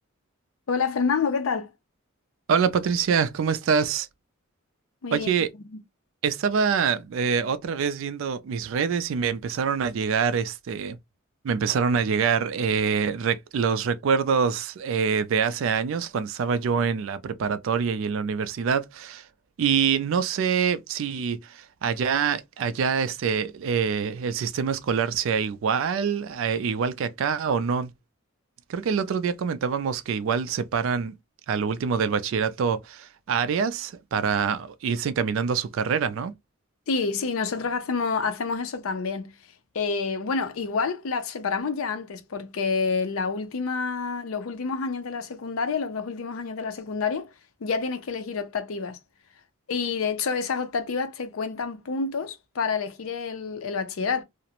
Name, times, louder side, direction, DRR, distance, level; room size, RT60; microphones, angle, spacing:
voice 1, 0.7-1.7 5.0-5.3 5.7-5.8 36.9-39.3 39.7-47.3 47.6-49.0 49.7-54.2, left 5 dB, 75° left, 0.5 m, -28 dB
voice 2, 2.5-4.1 5.1-5.5 6.2-11.0 11.4-19.3 19.6-27.9 28.7-31.1 31.5-36.3, right 6 dB, 65° right, 0.3 m, -25 dB
2.4 x 2.0 x 2.8 m
head